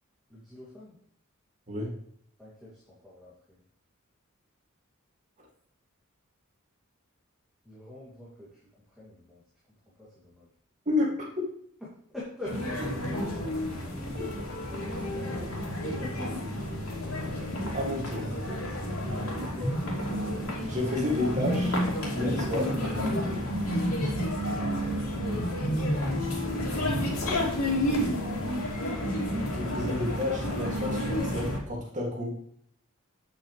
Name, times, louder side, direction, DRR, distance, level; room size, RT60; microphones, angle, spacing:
voice 1, 0.3-1.0 2.4-3.6 7.6-9.4 10.0-10.5 12.1-13.0 15.3-16.6 18.8-19.8 22.8-23.3 26.1-28.1, left 1 dB, ahead, -8 dB, 2.7 m, -44 dB
voice 2, 10.9-11.2 17.7-18.3 20.7-21.8 22.1-22.8 29.5-32.4, left 2 dB, 35° right, -2 dB, 2.5 m, -30 dB
sound 1, 12.5-31.6, equal, 85° left, 3.1 m, -30 dB
8.9 x 8.2 x 3.3 m, 0.66 s
head